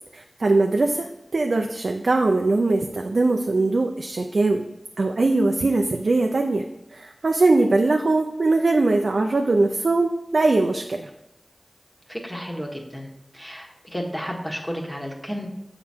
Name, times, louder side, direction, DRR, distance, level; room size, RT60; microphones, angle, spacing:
voice 1, 0.1-4.6 5.0-6.6 6.9-11.1, right 2 dB, 75° right, 3 dB, 0.5 m, -21 dB
voice 2, 12.1-15.5, equal, 15° left, -1 dB, 1.5 m, -32 dB
7.4 x 4.8 x 4.4 m, 0.87 s
cardioid pair, 40°, 0 cm